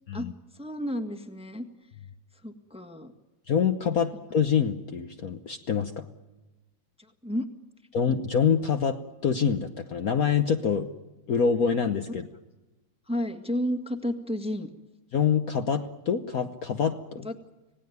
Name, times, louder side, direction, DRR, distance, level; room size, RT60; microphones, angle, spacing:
voice 1, 0.5-1.6 2.4-3.1 7.0-7.5 13.1-14.7 17.2-17.4, equal, 5° right, 6 dB, 1.4 m, -31 dB
voice 2, 3.5-6.0 7.9-10.9 11.3-12.3 15.1-17.3, left 7 dB, 55° left, 7 dB, 1.3 m, -26 dB
26.5 x 18.0 x 9.5 m, 1.1 s
omnidirectional pair, 2.1 m